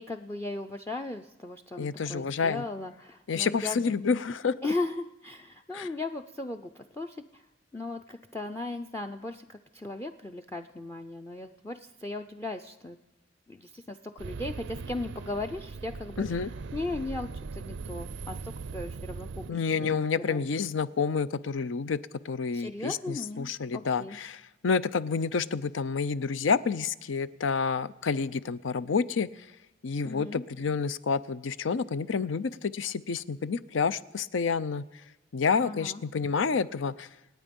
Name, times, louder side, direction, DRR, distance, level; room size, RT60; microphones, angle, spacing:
voice 1, 0.0-4.2 4.6-7.5 7.7-13.0 13.5-19.9 20.3-20.4 22.5-24.2 30.0-30.4 35.6-36.0, left 2 dB, 15° left, 7 dB, 0.5 m, -37 dB
voice 2, 1.8-2.6 3.3-4.7 5.7-5.9 16.2-16.5 19.5-22.0 22.2-29.3 29.8-34.8 35.3-37.1, left 5 dB, 80° left, 16 dB, 0.5 m, -29 dB
sound 1, 14.2-19.5, right 4 dB, 65° right, 0.4 m, -40 dB
27.5 x 9.2 x 5.3 m, 0.99 s
head